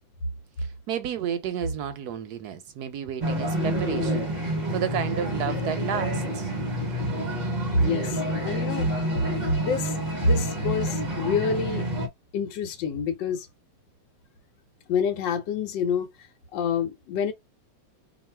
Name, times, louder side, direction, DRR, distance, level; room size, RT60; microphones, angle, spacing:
voice 1, 0.6-6.5, right 9 dB, 70° right, 1.0 m, -32 dB
sound 1, 3.2-12.1, equal, 50° right, 0.5 m, -28 dB
voice 2, 7.7-8.9 9.6-11.9 12.3-13.5 14.9-17.3, left 4 dB, 80° left, 1.4 m, -27 dB
2.9 x 2.5 x 4.3 m
omnidirectional pair, 2.0 m